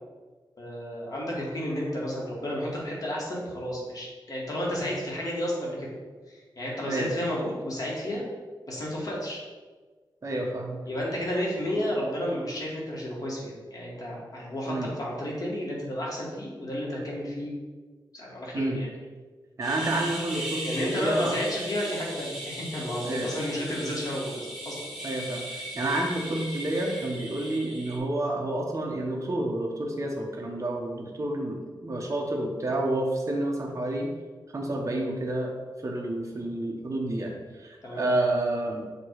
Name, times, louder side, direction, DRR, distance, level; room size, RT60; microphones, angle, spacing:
voice 1, 0.6-6.0 6.3-8.2 8.7-9.4 10.9-17.5 18.1-18.9 20.6-25.0 37.8-38.1, equal, 45° left, -4 dB, 1.8 m, -32 dB
voice 2, 10.2-10.8 14.7-14.9 18.5-18.8 19.6-21.3 23.0-23.3 25.0-34.1 34.5-35.5 35.8-39.0, right 1 dB, 40° right, -1 dB, 1.2 m, -29 dB
sound 1, 19.6-28.0, right 1 dB, 5° right, 1.1 m, -38 dB
8.1 x 3.0 x 4.8 m, 1.4 s
wide cardioid pair, 145°, 8 cm